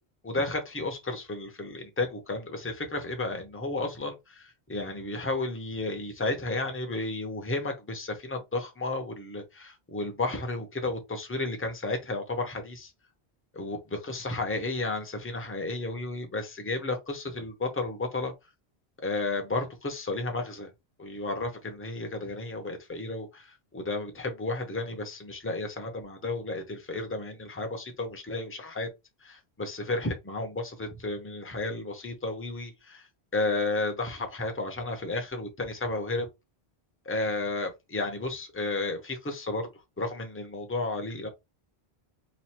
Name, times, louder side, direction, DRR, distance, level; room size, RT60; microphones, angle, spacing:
voice 1, 0.2-12.9 13.5-13.8 14.0-18.3 19.0-20.7 21.0-28.9 29.2-33.0 33.3-36.3 37.1-39.7 40.0-41.3, left 2 dB, 15° left, 0.7 m, -32 dB
3.1 x 2.5 x 4.3 m
omnidirectional pair, 1.1 m